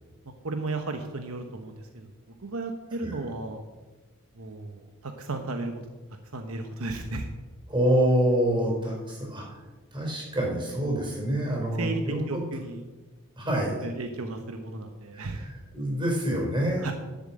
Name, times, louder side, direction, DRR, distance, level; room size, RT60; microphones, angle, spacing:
voice 1, 0.2-2.1 2.4-3.6 4.3-5.8 6.3-7.3 10.8-11.1 11.8-12.8 13.8-15.5 16.8-16.9, right 2 dB, 75° right, 5 dB, 1.0 m, -34 dB
voice 2, 7.7-9.4 9.9-12.4 13.4-13.8 15.1-15.2 15.7-16.8, right 1 dB, 20° right, -1 dB, 4.7 m, -26 dB
11.0 x 7.8 x 7.5 m, 1.2 s
head